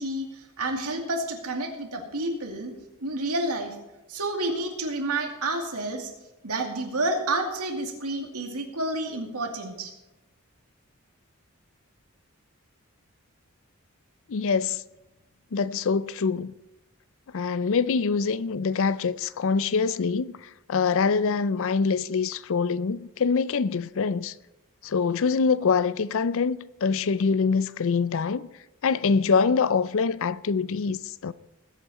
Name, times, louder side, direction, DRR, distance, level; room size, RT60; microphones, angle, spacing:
voice 1, 0.0-2.7 3.0-3.8 4.1-6.1 6.4-9.9, right 2 dB, 85° right, 2.4 m, -29 dB
voice 2, 14.3-14.8 15.5-16.5 17.3-24.3 24.8-28.5 28.8-31.3, left 5 dB, 60° left, 0.5 m, -24 dB
20.5 x 8.5 x 4.2 m
head